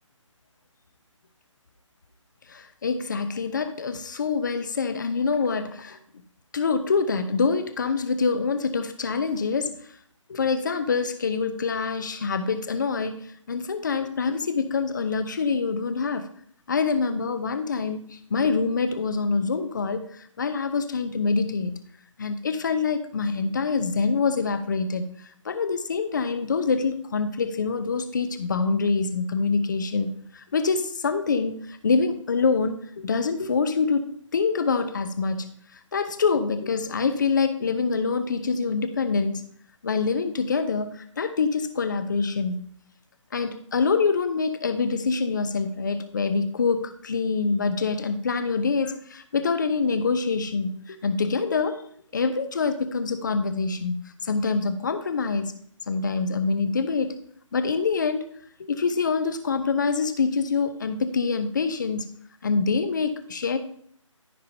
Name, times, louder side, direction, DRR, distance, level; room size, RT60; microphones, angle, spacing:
voice 1, 2.5-6.0 6.5-9.7 10.3-16.3 16.7-21.8 22.2-25.1 25.4-34.1 34.3-35.5 35.9-39.5 39.8-42.6 43.3-51.8 52.1-53.9 54.2-55.5 55.9-57.2 57.5-58.3 58.6-62.1 62.4-63.6, left 4 dB, 35° left, 10 dB, 0.9 m, -25 dB
14.5 x 5.0 x 2.9 m, 0.63 s
figure-of-eight pair, 160°, 17 cm